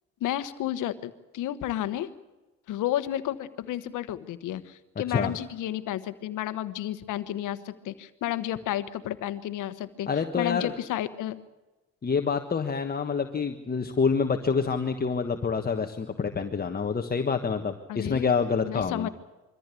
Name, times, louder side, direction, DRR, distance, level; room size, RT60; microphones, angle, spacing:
voice 1, 0.2-2.1 2.7-11.4 17.9-18.3 18.6-19.1, left 12 dB, 85° left, 12 dB, 1.3 m, -32 dB
voice 2, 10.1-10.7 12.0-19.1, left 5 dB, 30° left, 5 dB, 1.4 m, -27 dB
23.5 x 14.5 x 8.4 m, 1.1 s
cardioid pair, 90°, 30 cm